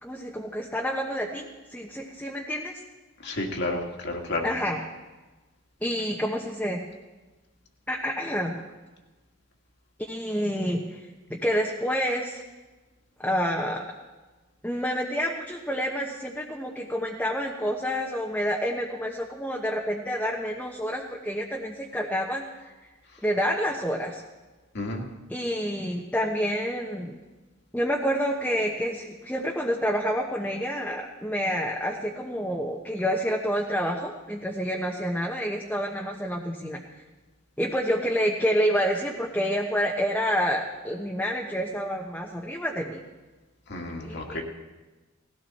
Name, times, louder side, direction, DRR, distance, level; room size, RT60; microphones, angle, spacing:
voice 1, 0.0-2.8 4.4-4.8 5.8-6.8 7.9-8.5 10.0-11.0 11.3-12.4 13.2-13.8 14.6-22.7 23.2-24.2 25.3-27.1 27.7-36.8 37.6-43.0 44.0-44.4, equal, 10° left, -1 dB, 1.1 m, -28 dB
voice 2, 3.2-4.5 24.7-25.1 43.7-44.4, left 2 dB, 55° left, 1 dB, 2.2 m, -31 dB
19.0 x 16.0 x 4.3 m, 1.2 s
head